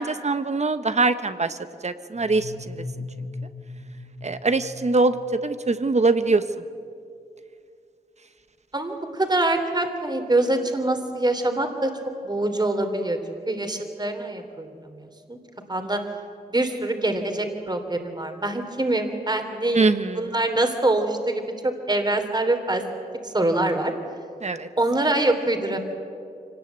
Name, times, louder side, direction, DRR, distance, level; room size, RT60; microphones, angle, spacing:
voice 1, 0.0-1.6 1.8-2.8 4.2-5.1 5.4-6.4 19.7-20.3 24.4-24.7, right 3 dB, 45° right, 11 dB, 1.2 m, -22 dB
sound 1, 2.1-5.8, left 3 dB, 60° left, 4.3 m, -39 dB
voice 2, 8.7-11.9 12.2-13.2 13.5-14.7 15.0-15.4 15.7-16.0 16.5-19.9 20.1-22.8 23.2-23.9 24.8-25.8, right 2 dB, 25° right, 5 dB, 3.0 m, -24 dB
25.0 x 19.0 x 8.2 m, 2.5 s
cardioid pair, 60°, 16 cm